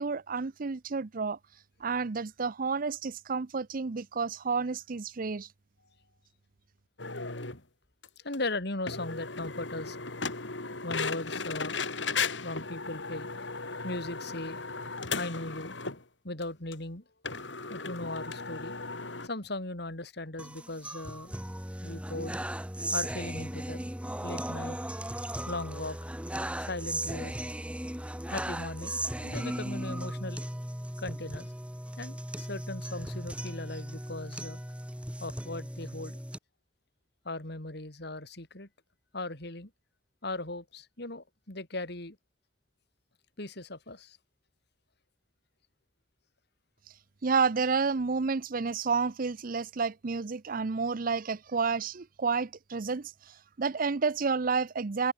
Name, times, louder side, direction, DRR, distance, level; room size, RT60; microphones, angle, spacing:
voice 1, 0.0-1.4 1.8-5.5 47.2-55.1, right 5 dB, 50° right, 0.6 m, -30 dB
sound 1, 7.0-7.6 8.0-8.1 8.3-8.4 8.9-16.0 16.4-16.5 16.7-16.8 17.2-19.3, left 4 dB, 90° left, 4.2 m, -36 dB
voice 2, 8.2-10.0 10.8-11.8 12.4-14.6 15.1-15.8 16.2-17.0 17.7-18.7 19.2-21.3 21.8-22.4 22.9-23.9 24.2-24.8 25.5-26.0 26.6-27.4 28.3-30.4 31.0-31.5 32.0-34.6 35.2-36.2 37.2-38.7 39.1-39.7 40.2-42.2 43.4-44.2, left 2 dB, 65° left, 4.2 m, -38 dB
sound 2, 20.4-36.4, right 1 dB, 5° right, 2.4 m, -37 dB
head